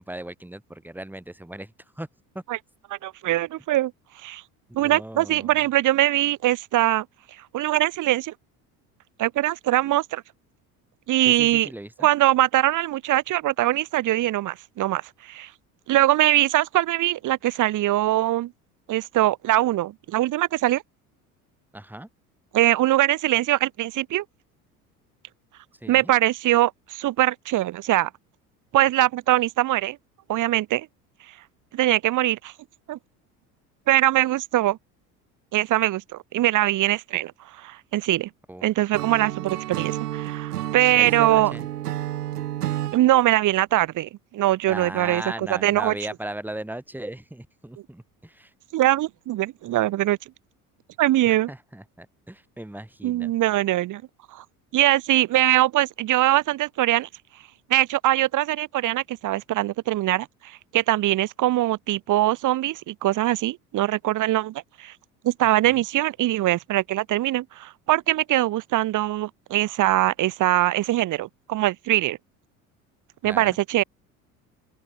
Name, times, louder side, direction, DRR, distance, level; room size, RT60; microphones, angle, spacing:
voice 1, 0.0-2.1 2.3-2.4 4.8-5.6 11.2-12.1 21.7-22.1 25.8-26.1 38.5-38.7 40.9-41.7 44.7-48.5 51.3-53.3 65.6-65.9 73.2-73.6, right 1 dB, 5° right, 4.7 m, -37 dB
voice 2, 2.9-3.9 4.2-4.4 4.7-7.1 7.5-8.3 9.2-10.2 11.1-11.7 12.0-15.5 15.9-18.5 18.9-20.8 22.5-24.2 25.9-28.1 28.7-30.0 30.3-30.9 31.7-32.5 32.9-33.0 33.9-34.8 35.5-36.0 36.3-37.3 37.6-38.3 38.6-41.5 42.9-45.9 48.7-50.2 51.0-51.5 53.0-54.0 54.3-54.4 54.7-57.1 57.7-64.9 65.2-72.2 73.2-73.8, right 15 dB, 40° right, 1.1 m, -22 dB
Acoustic guitar / Strum, 38.9-43.0, right 13 dB, 85° right, 0.8 m, -30 dB
open air
hypercardioid pair, 65°, 45 cm